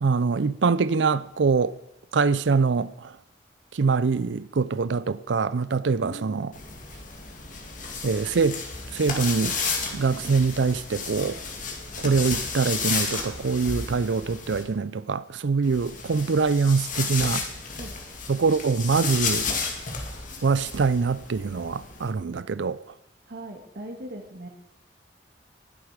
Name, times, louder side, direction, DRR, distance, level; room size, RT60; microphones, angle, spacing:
voice 1, 0.0-1.8 2.1-3.2 3.7-6.5 8.0-8.6 8.9-9.6 9.9-11.4 12.0-17.5 18.3-19.5 20.4-22.8, right 4 dB, 85° right, 0.5 m, -24 dB
voice 2, 6.0-6.5 17.8-17.9 23.3-24.5, right 1 dB, 60° right, 2.1 m, -39 dB
sound 1, 6.5-14.6 15.6-22.1, left 4 dB, 50° left, 2.4 m, -32 dB
19.5 x 8.1 x 5.0 m
head